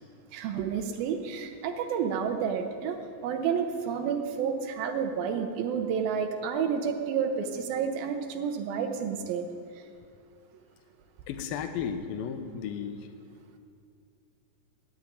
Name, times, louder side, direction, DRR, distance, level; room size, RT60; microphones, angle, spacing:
voice 1, 0.3-3.0 3.2-9.5, right 7 dB, 90° right, 5 dB, 2.8 m, -30 dB
voice 2, 11.3-13.0, left 7 dB, 80° left, 8 dB, 2.6 m, -34 dB
16.5 x 6.6 x 9.8 m, 2.3 s
omnidirectional pair, 4.1 m